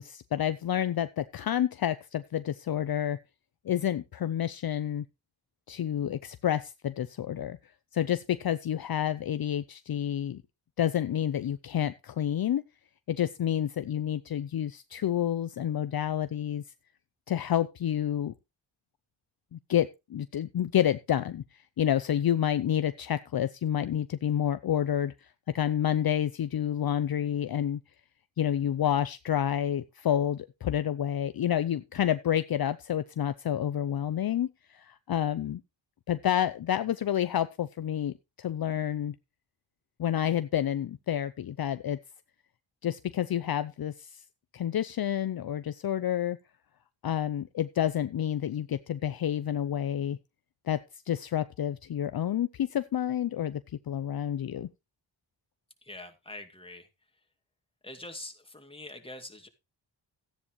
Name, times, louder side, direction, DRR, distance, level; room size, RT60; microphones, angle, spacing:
voice 1, 0.0-3.2 3.6-5.0 5.7-7.6 7.9-10.4 10.8-12.6 13.1-16.6 17.3-18.3 19.5-21.4 21.8-25.3 25.5-27.8 28.4-35.6 36.1-39.1 40.0-42.0 42.8-44.2 44.5-46.4 47.0-50.2 50.7-50.8 51.1-53.6 53.9-54.7, left 10 dB, 55° left, 12 dB, 0.7 m, -29 dB
voice 2, 55.8-56.9 57.8-59.5, left 2 dB, 10° left, 5 dB, 2.4 m, -44 dB
14.0 x 9.9 x 3.1 m, 0.25 s
cardioid pair, 60°, 44 cm